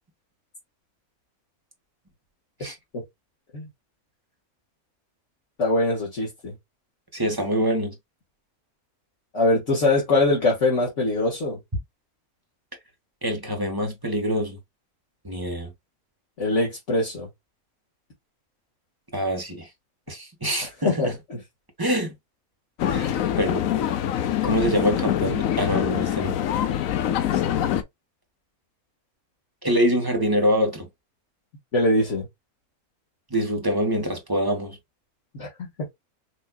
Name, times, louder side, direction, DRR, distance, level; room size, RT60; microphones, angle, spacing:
voice 1, 5.6-6.6 9.3-11.6 16.4-17.3 20.6-21.4 31.7-32.3 35.4-35.7, left 2 dB, 55° left, 1.8 m, -23 dB
voice 2, 7.1-7.9 13.2-14.6 15.2-15.7 19.1-19.7 20.1-21.2 21.8-22.1 22.9-23.6 24.4-26.4 29.6-30.9 33.3-34.8, equal, 15° right, 1.2 m, -25 dB
sound 1, 22.8-27.8, left 10 dB, 70° left, 1.0 m, -24 dB
6.3 x 2.7 x 2.3 m
omnidirectional pair, 1.5 m